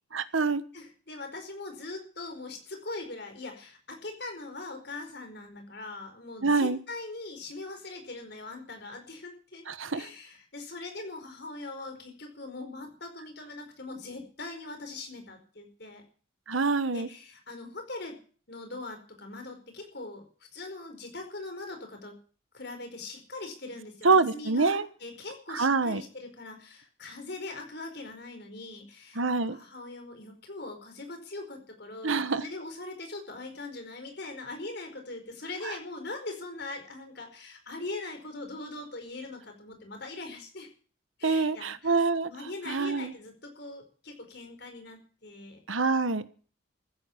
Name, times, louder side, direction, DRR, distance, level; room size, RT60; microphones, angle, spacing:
voice 1, 0.1-0.6 6.4-6.8 9.7-10.1 16.5-17.1 24.0-24.8 25.5-26.0 29.1-29.6 32.0-32.4 35.6-35.7 41.2-42.3 42.7-43.1 45.7-46.3, right 4 dB, 75° right, 13 dB, 1.2 m, -26 dB
voice 2, 0.7-9.6 9.9-16.0 16.9-18.2 18.5-20.3 20.5-22.1 22.5-40.7 41.2-45.6, left 2 dB, 55° left, 5 dB, 4.8 m, -41 dB
15.0 x 9.4 x 9.7 m, 0.42 s
head